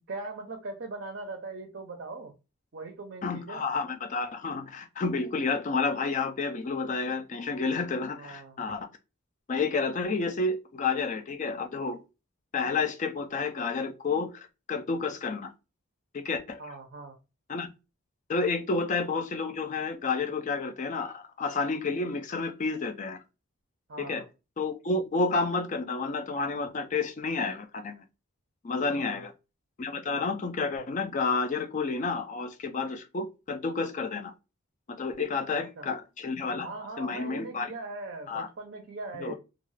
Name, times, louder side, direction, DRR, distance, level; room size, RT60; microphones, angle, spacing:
voice 1, 0.1-2.3 2.7-3.7 8.2-8.6 16.6-17.2 23.9-24.3 29.1-29.3 35.5-35.9 36.6-39.4, right 3 dB, 50° right, 0.5 m, -40 dB
voice 2, 3.2-8.9 9.5-12.0 12.5-15.5 16.1-16.6 17.5-17.7 18.3-23.2 24.0-24.2 24.6-28.0 28.6-29.3 29.8-34.3 34.9-36.7 37.0-37.7 38.3-38.5 39.2-39.4, left 4 dB, 35° left, 0.3 m, -30 dB
2.4 x 2.3 x 3.1 m
head